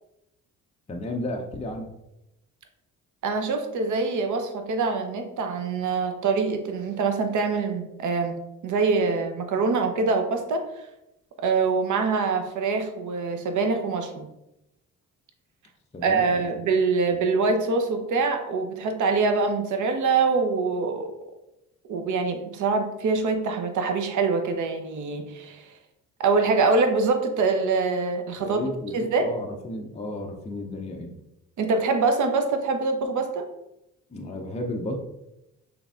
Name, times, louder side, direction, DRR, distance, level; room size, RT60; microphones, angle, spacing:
voice 1, 0.9-1.9 15.9-16.5 17.1-17.2 28.4-31.2 34.1-35.0, left 1 dB, 15° left, 1 dB, 0.6 m, -33 dB
voice 2, 3.2-10.6 11.4-14.3 16.0-21.1 21.9-25.7 26.2-28.6 28.9-29.3 31.6-33.5, right 4 dB, 45° right, 6 dB, 0.8 m, -24 dB
6.0 x 3.3 x 2.4 m, 0.87 s
figure-of-eight pair, 40°, 43 cm